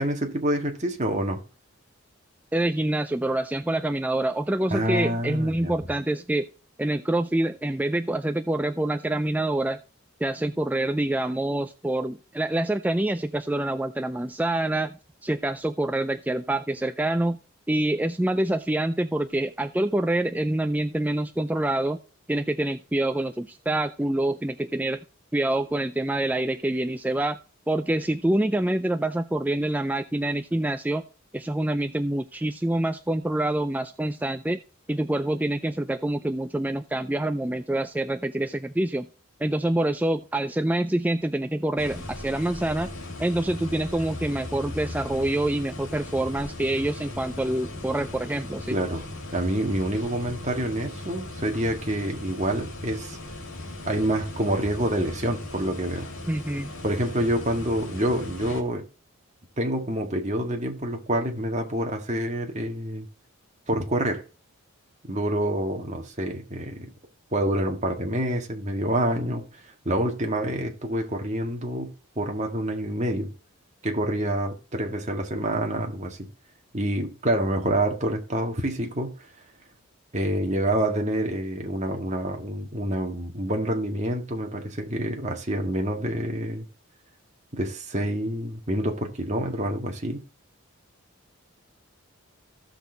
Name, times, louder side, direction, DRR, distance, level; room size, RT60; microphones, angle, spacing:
voice 1, 0.0-1.4 4.7-5.7 48.7-49.0 49.3-53.2 53.9-56.1 56.8-58.9 59.6-63.1 63.7-64.2 65.0-66.9 67.3-69.4 69.9-71.9 72.2-73.3 73.8-76.3 76.7-79.1 80.1-86.7 87.5-90.2, right 1 dB, 35° right, 1.9 m, -27 dB
voice 2, 2.5-6.5 6.8-9.8 10.2-14.9 15.2-17.4 17.7-22.0 22.3-25.0 25.3-27.4 27.7-31.0 31.3-34.6 34.9-39.1 39.4-42.9 43.2-48.8 56.3-56.7, right 1 dB, 10° right, 0.4 m, -26 dB
sound 1, 41.8-58.6, left 1 dB, 70° left, 2.8 m, -38 dB
15.0 x 6.4 x 3.9 m
head